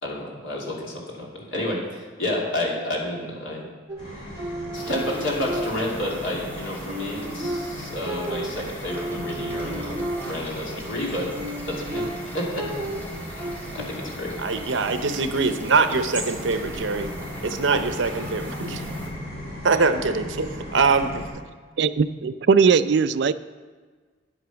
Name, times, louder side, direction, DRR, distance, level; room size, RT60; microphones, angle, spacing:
voice 1, 0.0-3.7 4.1-10.0 10.3-11.3 11.7-12.7 13.3-14.3, left 1 dB, 80° left, -3 dB, 2.7 m, -30 dB
sound 1, 3.9-6.2 6.6-10.6 11.1-13.6, right 1 dB, 15° right, 3.0 m, -33 dB
sound 2, 4.0-21.3, left 1 dB, 35° left, 4.1 m, -37 dB
sound 3, 4.7-19.1, right 1 dB, 10° left, 1.7 m, -40 dB
voice 2, 14.4-17.1 17.4-18.8 19.6-21.2, right 4 dB, 80° right, 9 dB, 0.8 m, -23 dB
voice 3, 21.8-23.3, right 5 dB, 60° right, 14 dB, 0.4 m, -19 dB
10.0 x 8.2 x 5.8 m, 1.5 s
head